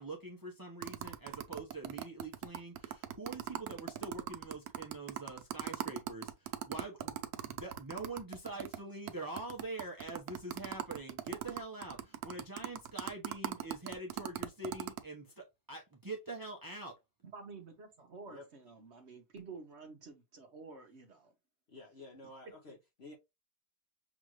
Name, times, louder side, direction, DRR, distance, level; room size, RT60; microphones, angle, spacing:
voice 1, 0.0-17.0, right 2 dB, 35° right, 0.3 m, -45 dB
sound 1, 0.8-8.8 9.1-9.2 9.4-15.0, right 11 dB, 75° right, 1.1 m, -39 dB
voice 2, 17.3-21.3 22.7-22.8, right 4 dB, 50° right, 1.0 m, -50 dB
voice 3, 21.7-23.1, left 2 dB, 50° left, 0.8 m, -52 dB
6.1 x 2.5 x 3.0 m
omnidirectional pair, 1.8 m